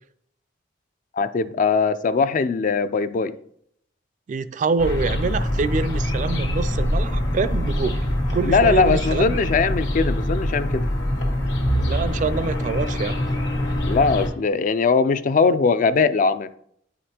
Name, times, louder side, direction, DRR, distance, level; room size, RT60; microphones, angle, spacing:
voice 1, 1.2-3.4 8.4-10.8 13.9-16.5, left 4 dB, 45° left, 0.3 m, -20 dB
voice 2, 4.3-8.0 8.3-9.4 11.8-13.2, right 4 dB, 40° right, 0.3 m, -25 dB
sound 1, 4.8-14.3, equal, 70° left, 1.3 m, -24 dB
9.1 x 5.0 x 2.8 m
head